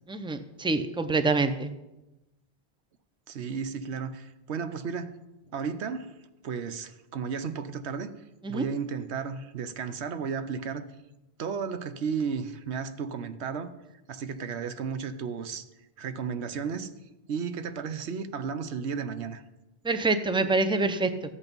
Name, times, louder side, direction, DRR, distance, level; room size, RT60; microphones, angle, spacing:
voice 1, 0.1-1.7 8.4-8.6 19.8-21.1, right 3 dB, 5° right, 0.5 m, -26 dB
voice 2, 3.3-5.2 5.5-6.1 6.4-8.1 8.5-10.9 11.4-13.7 14.1-15.6 16.0-16.9 17.3-19.4, right 6 dB, 85° right, 1.1 m, -33 dB
13.5 x 8.3 x 5.3 m
omnidirectional pair, 1.1 m